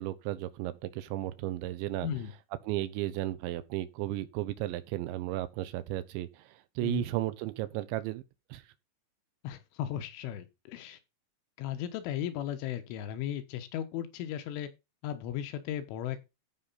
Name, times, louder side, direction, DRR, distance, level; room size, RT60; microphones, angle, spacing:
voice 1, 0.0-2.1 2.6-8.2 8.5-8.6, right 15 dB, 80° right, 3.1 m, -34 dB
voice 2, 9.4-11.0 11.6-14.7 15.0-16.2, left 11 dB, 85° left, 3.7 m, -36 dB
14.5 x 5.6 x 4.1 m
omnidirectional pair, 5.4 m